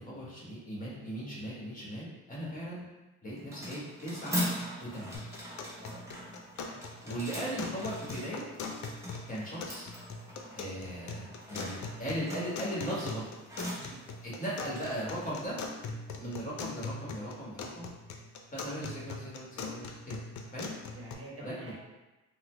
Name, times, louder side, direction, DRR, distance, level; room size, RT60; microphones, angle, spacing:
voice 1, 0.0-2.9 3.2-4.4 4.8-5.2 7.0-8.4 9.3-9.9 10.5-13.3 14.2-15.6 16.2-17.9 18.5-20.2 20.5-20.7 21.4-21.7, equal, 25° left, -6 dB, 1.3 m, -38 dB
sound 1, 3.3-16.4, equal, 10° right, 0.9 m, -41 dB
sound 2, 5.1-21.1, left 4 dB, 70° left, 0.5 m, -42 dB
voice 2, 5.7-6.4 13.8-14.0 20.9-21.7, right 1 dB, 50° right, -4 dB, 1.0 m, -48 dB
3.8 x 2.1 x 3.2 m, 1.1 s
cardioid pair, 90°, 30 cm